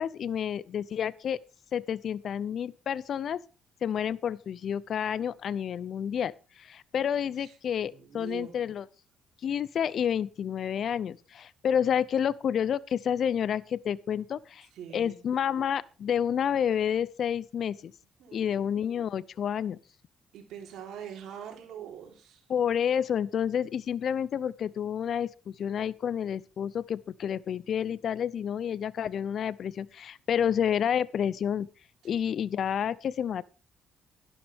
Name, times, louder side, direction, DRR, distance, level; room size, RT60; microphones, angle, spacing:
voice 1, 0.0-1.4 1.7-3.4 3.8-8.9 9.4-14.7 14.9-17.9 18.3-19.8 22.5-31.7 32.0-33.4, left 8 dB, 60° left, 0.5 m, -29 dB
voice 2, 7.4-8.6 14.7-15.2 18.2-18.6 20.3-22.4, right 9 dB, 80° right, 3.4 m, -44 dB
11.5 x 11.5 x 3.5 m
cardioid pair, 90°, 0 cm